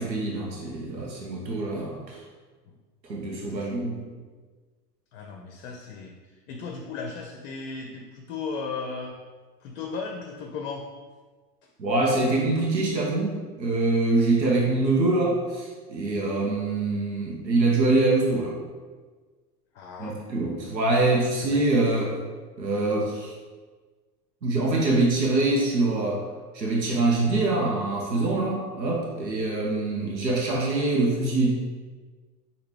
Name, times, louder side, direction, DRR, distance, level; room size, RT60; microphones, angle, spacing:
voice 1, 0.0-2.2 3.0-4.1 11.8-18.6 20.0-22.2 22.6-23.3 24.4-26.2 26.5-31.5, right 2 dB, 90° right, -2 dB, 0.7 m, -24 dB
voice 2, 5.1-6.1 6.5-9.1 9.6-10.8 19.7-20.2 21.4-21.6, left 4 dB, 50° left, 1 dB, 0.5 m, -36 dB
4.5 x 2.4 x 3.3 m, 1.4 s
figure-of-eight pair, 80°, 50 cm